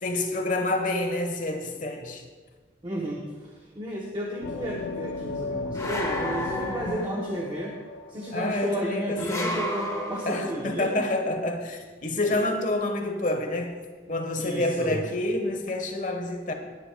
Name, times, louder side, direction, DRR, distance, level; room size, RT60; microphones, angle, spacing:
voice 1, 0.0-2.2 6.8-7.3 8.3-9.6 10.3-13.8 14.1-16.5, left 2 dB, 45° left, 4 dB, 1.2 m, -28 dB
voice 2, 2.8-7.8 8.1-11.1 12.3-12.4 14.4-15.0, equal, 25° right, -1 dB, 0.9 m, -33 dB
sound 1, 4.4-9.0, left 3 dB, 70° left, 0.5 m, -36 dB
sound 2, 5.7-7.4 9.2-10.6, left 1 dB, 15° left, 1.0 m, -32 dB
18.0 x 10.0 x 2.3 m, 1.4 s
head